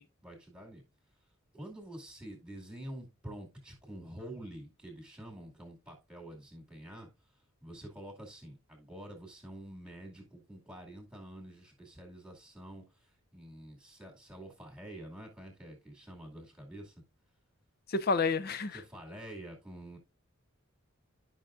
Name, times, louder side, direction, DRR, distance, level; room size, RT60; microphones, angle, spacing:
voice 1, 0.2-0.8 1.5-7.1 7.6-16.9 18.7-20.0, right 1 dB, 5° right, 2.3 m, -47 dB
voice 2, 17.9-18.8, left 4 dB, 45° left, 0.6 m, -29 dB
11.5 x 5.7 x 2.5 m
head